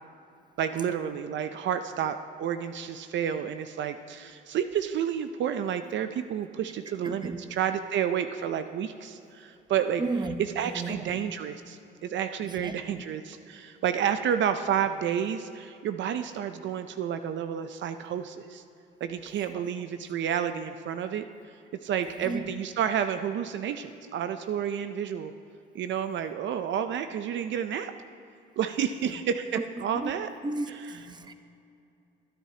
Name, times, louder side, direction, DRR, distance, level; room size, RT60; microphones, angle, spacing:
voice 1, 0.6-10.0 10.4-18.6 19.0-21.3 21.8-25.3 25.7-27.9 28.6-30.3 30.7-30.9, right 9 dB, 70° right, 9 dB, 0.5 m, -30 dB
voice 2, 7.0-7.5 10.0-10.4 10.6-11.2 12.4-13.0 22.0-22.5 29.0-29.1 29.5-29.7 29.9-30.1 30.4-31.3, right 2 dB, 20° right, 8 dB, 0.8 m, -34 dB
22.5 x 10.5 x 2.8 m, 2.6 s
cardioid pair, 90°, 20 cm